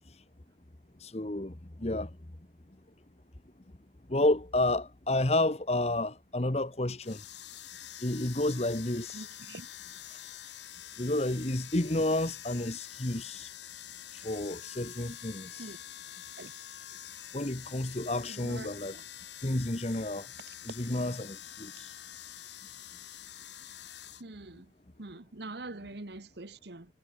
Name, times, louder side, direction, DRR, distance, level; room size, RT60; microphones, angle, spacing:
voice 1, 1.0-2.2 4.1-7.2 8.0-9.3 10.1-10.2 11.0-13.5 14.1-15.8 17.3-19.0 19.4-20.3 20.6-21.9, left 1 dB, 35° left, 1.2 m, -31 dB
sound 1, 7.0-24.2, left 11 dB, 85° left, 4.0 m, -46 dB
voice 2, 9.1-9.7 15.6-15.8 16.4-16.5 18.3-18.7 24.2-24.6 25.0-26.9, right 2 dB, 70° right, 1.5 m, -44 dB
head